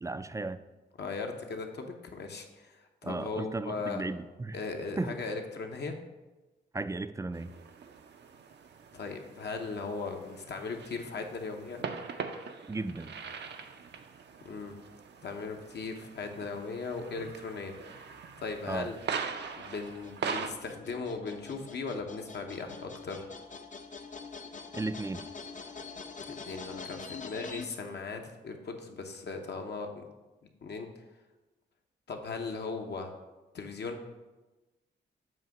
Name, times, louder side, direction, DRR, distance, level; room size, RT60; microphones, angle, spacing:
voice 1, 0.0-0.6 3.0-4.6 5.0-5.2 6.7-7.5 12.7-13.1 18.7-18.9 24.7-25.2, right 3 dB, 15° right, 12 dB, 0.4 m, -35 dB
voice 2, 1.0-4.0 4.5-5.9 8.9-11.8 14.4-14.7 15.2-17.7 18.4-19.0 19.6-23.3 26.3-30.1 30.6-30.9 32.1-33.1 33.5-34.0, left 4 dB, 60° left, 4 dB, 0.9 m, -38 dB
sound 1, 7.3-20.5, right 6 dB, 65° right, 0.6 m, -42 dB
sound 2, 18.6-27.7, left 4 dB, 40° left, 0.6 m, -45 dB
7.5 x 2.8 x 5.9 m, 1.1 s
supercardioid pair, 55°, 20 cm